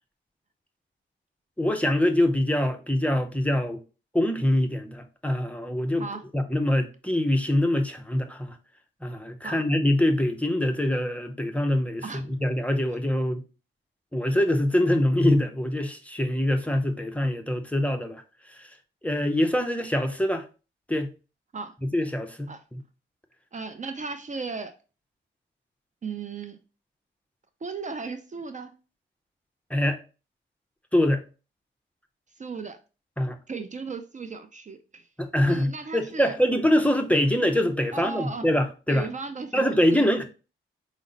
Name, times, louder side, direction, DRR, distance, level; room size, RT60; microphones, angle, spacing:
voice 1, 1.6-3.8 4.1-6.0 6.3-8.6 9.0-12.0 12.4-13.4 14.1-18.2 18.5-18.7 19.0-20.4 20.9-21.1 21.8-22.8 29.7-30.0 30.9-31.2 33.2-33.4 35.2-39.1 39.5-40.2, left 1 dB, 5° left, 0.6 m, -24 dB
voice 2, 23.5-24.7 26.0-26.6 27.6-28.7 32.4-32.8 33.5-35.1 35.5-36.4 37.9-38.5 38.9-40.1, right 4 dB, 35° right, 0.5 m, -36 dB
5.0 x 2.1 x 3.8 m
cardioid pair, 65°, 21 cm